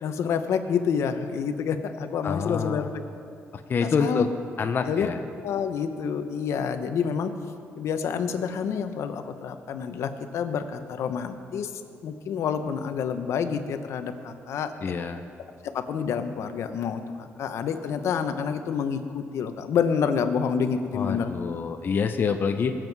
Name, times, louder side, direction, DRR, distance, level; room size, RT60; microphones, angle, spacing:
voice 1, 0.0-2.8 3.8-4.2 4.9-5.1 5.4-7.3 7.8-11.7 12.0-14.7 15.6-21.3, left 7 dB, 75° left, 8 dB, 0.9 m, -28 dB
voice 2, 2.2-2.9 3.7-4.3 4.6-5.2 14.8-15.2 20.9-22.7, left 5 dB, 45° left, 6 dB, 0.7 m, -26 dB
20.0 x 7.7 x 4.7 m, 2.4 s
cardioid pair, 100°, 5 cm